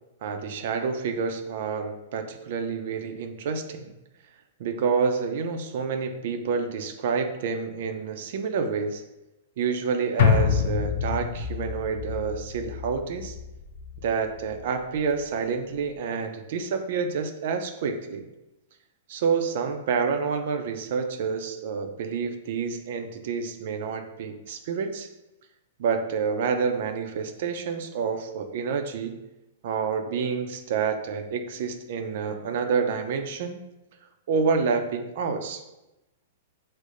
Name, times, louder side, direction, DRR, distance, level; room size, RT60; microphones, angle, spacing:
voice 1, 0.2-3.9 4.6-9.0 9.6-13.4 14.0-18.2 19.1-25.1 25.8-29.2 29.6-33.6 34.3-35.6, right 5 dB, 60° right, 6 dB, 0.5 m, -28 dB
sound 1, 10.2-14.6 15.0-15.1, left 7 dB, 60° left, 0.4 m, -26 dB
6.2 x 2.1 x 2.5 m, 0.96 s
hypercardioid pair, 135°, 0 cm